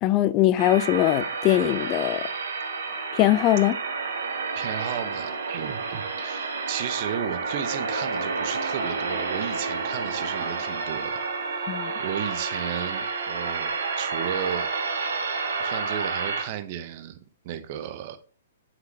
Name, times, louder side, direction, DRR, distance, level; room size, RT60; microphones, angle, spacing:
voice 1, 0.0-2.3 3.2-3.8 11.7-11.9, left 14 dB, 30° left, 0.5 m, -21 dB
sound 1, 0.6-16.4, right 4 dB, 65° right, 1.6 m, -30 dB
voice 2, 4.5-14.7 15.6-18.2, right 10 dB, 40° right, 1.1 m, -34 dB
sound 2, 9.1-14.1, right 2 dB, 25° right, 2.5 m, -46 dB
7.4 x 6.1 x 3.4 m
figure-of-eight pair, 115°, 0 cm